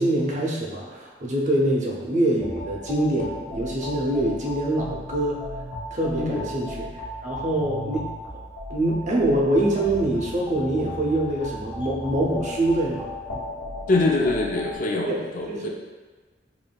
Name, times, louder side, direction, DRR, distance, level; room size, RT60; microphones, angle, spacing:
voice 1, 0.0-5.4 5.9-8.1 8.7-13.1 15.1-15.7, right 1 dB, 40° right, -2 dB, 0.6 m, -24 dB
sound 1, 2.4-14.7, left 1 dB, 60° left, 1.1 m, -36 dB
voice 2, 6.2-6.5 13.9-15.7, left 2 dB, 45° left, 0 dB, 0.5 m, -24 dB
5.0 x 3.1 x 2.3 m, 1.3 s
head